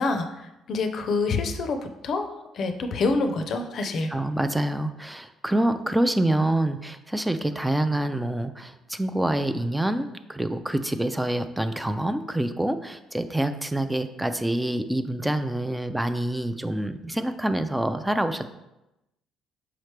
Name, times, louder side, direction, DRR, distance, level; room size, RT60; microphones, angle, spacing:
voice 1, 0.0-1.8 2.0-2.3 2.5-4.1, left 3 dB, 60° left, 6 dB, 0.5 m, -26 dB
voice 2, 4.1-18.5, right 1 dB, 10° right, 9 dB, 0.3 m, -26 dB
4.8 x 3.1 x 3.2 m, 0.93 s
supercardioid pair, 60°, 0 cm